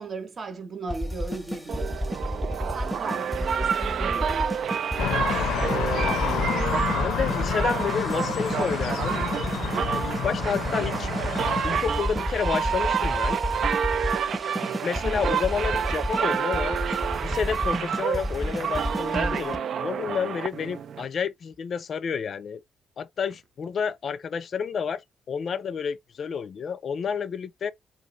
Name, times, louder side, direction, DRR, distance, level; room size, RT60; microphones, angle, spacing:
voice 1, 0.0-2.0 2.7-4.8 15.0-15.4, right 3 dB, 45° right, 0.9 m, -37 dB
sound 1, 0.9-19.6, equal, ahead, 0.7 m, -31 dB
sound 2, 1.7-21.1, right 7 dB, 60° right, 0.3 m, -29 dB
sound 3, 5.0-11.6, left 8 dB, 90° left, 0.7 m, -30 dB
voice 2, 5.3-6.4 7.0-9.2 9.9-11.1 11.6-13.4 14.8-22.6 23.0-25.0 25.3-27.7, left 6 dB, 55° left, 0.3 m, -30 dB
2.7 x 2.5 x 3.0 m
cardioid pair, 90°, 0 cm